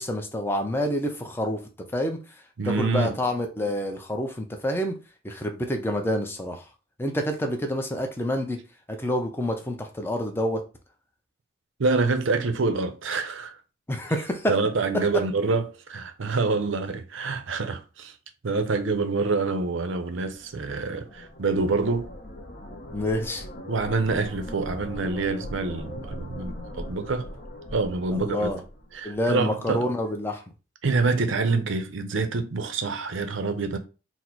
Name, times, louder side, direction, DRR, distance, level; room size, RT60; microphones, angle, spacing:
voice 1, 0.0-1.6 1.9-2.2 2.6-5.0 5.2-6.6 7.0-8.6 8.9-10.6 13.9-14.5 22.9-23.4 28.1-28.6 29.0-30.4, left 1 dB, 10° left, 0.5 m, -27 dB
voice 2, 2.6-3.2 11.8-13.5 14.5-18.1 18.4-22.1 23.7-27.3 27.7-28.6 28.9-29.8 30.8-33.8, right 3 dB, 70° right, 0.6 m, -26 dB
sound 1, 20.1-29.4, left 1 dB, 50° left, 0.8 m, -40 dB
4.1 x 2.0 x 4.4 m
head